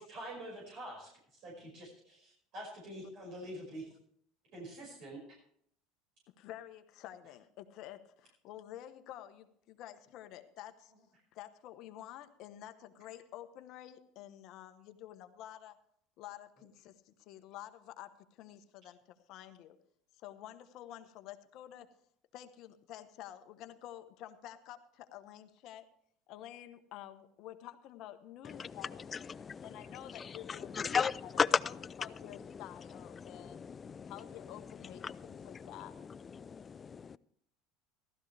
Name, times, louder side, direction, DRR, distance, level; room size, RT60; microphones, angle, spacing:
voice 1, 0.0-3.9 4.5-5.2, right 1 dB, 60° right, 5.6 m, -46 dB
voice 2, 6.4-10.9 11.3-15.8 16.2-19.0 19.3-19.8 20.2-21.9 22.3-25.8 26.3-29.2 29.6-33.7 34.1-35.9, left 12 dB, 60° left, 1.1 m, -50 dB
voice 3, 29.1-32.1 32.5-32.6 33.1-34.1 35.0-35.7 36.3-37.2, left 6 dB, 30° left, 0.4 m, -36 dB
15.0 x 13.0 x 3.4 m
supercardioid pair, 95°, 0 cm